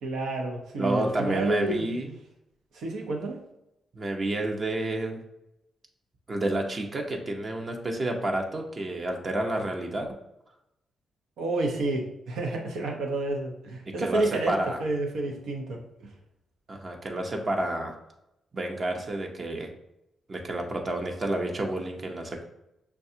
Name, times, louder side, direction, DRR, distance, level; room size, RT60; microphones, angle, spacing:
voice 1, 0.0-1.9 2.7-3.4 11.4-16.1, right 2 dB, 80° right, 1 dB, 0.7 m, -30 dB
voice 2, 0.8-2.1 3.9-5.2 6.3-10.1 14.0-14.8 16.7-17.9 18.5-19.7 20.3-22.4, right 1 dB, 45° right, 2 dB, 0.7 m, -30 dB
5.7 x 2.3 x 2.7 m, 0.86 s
supercardioid pair, 55°, 0 cm